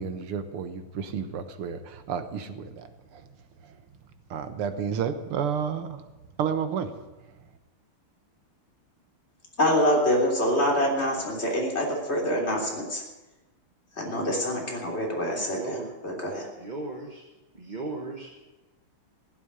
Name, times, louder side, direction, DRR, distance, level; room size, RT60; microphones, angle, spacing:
voice 1, 0.0-3.2 3.6-3.8 4.3-6.1 6.4-7.0, right 7 dB, 80° right, 10 dB, 2.1 m, -31 dB
voice 2, 9.6-13.0 14.0-15.8 16.0-16.5, equal, 30° left, 0 dB, 3.7 m, -25 dB
voice 3, 15.4-15.9 16.6-17.2 17.5-18.4, right 3 dB, 25° right, 1 dB, 1.1 m, -37 dB
15.0 x 8.7 x 9.9 m, 1.1 s
omnidirectional pair, 2.4 m